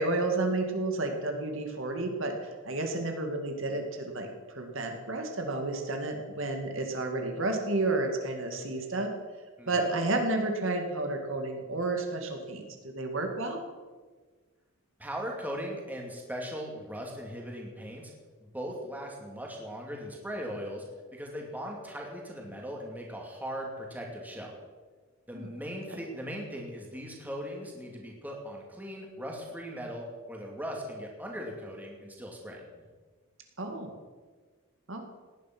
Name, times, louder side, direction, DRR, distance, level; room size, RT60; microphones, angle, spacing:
voice 1, 0.0-4.3 4.5-9.1 9.7-13.6 25.3-25.5 25.9-26.0 33.6-33.9 34.9-35.1, right 2 dB, 65° right, 3 dB, 2.2 m, -31 dB
voice 2, 15.0-18.1 18.4-20.8 21.1-24.5 25.3-32.8, equal, 10° right, 0 dB, 2.5 m, -39 dB
18.0 x 10.5 x 6.1 m, 1.4 s
head